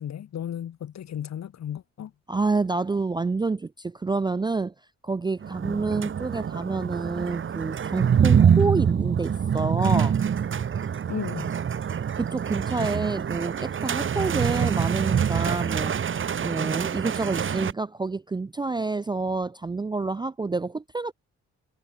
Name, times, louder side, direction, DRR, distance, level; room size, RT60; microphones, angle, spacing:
voice 1, 0.0-2.1 11.1-11.5, left 10 dB, 60° left, 3.5 m, -34 dB
voice 2, 2.3-4.7 5.0-10.2 12.1-16.0 16.4-21.1, right 3 dB, 15° right, 0.4 m, -28 dB
sound 1, 5.4-17.7, right 8 dB, 40° right, 1.2 m, -25 dB
cardioid pair, 90°, 30 cm